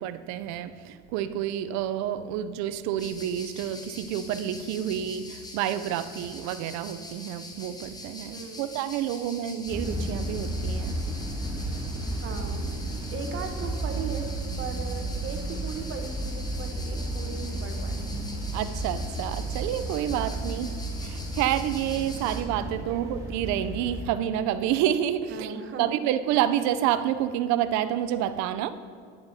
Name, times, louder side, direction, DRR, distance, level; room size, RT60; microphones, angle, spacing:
voice 1, 0.0-10.9 18.5-20.7 21.0-28.7, right 11 dB, 65° right, 12 dB, 0.5 m, -29 dB
sound 1, 3.0-22.4, left 2 dB, 15° left, 0.9 m, -44 dB
voice 2, 8.3-8.7 12.2-12.7 13.1-14.3 14.6-18.0 20.1-20.4 22.9-23.1 25.3-26.0, right 5 dB, 40° right, 5 dB, 1.0 m, -38 dB
sound 2, 9.7-24.0, right 2 dB, 10° right, 1.8 m, -33 dB
10.5 x 9.4 x 2.7 m, 2.2 s
cardioid pair, 125°, 31 cm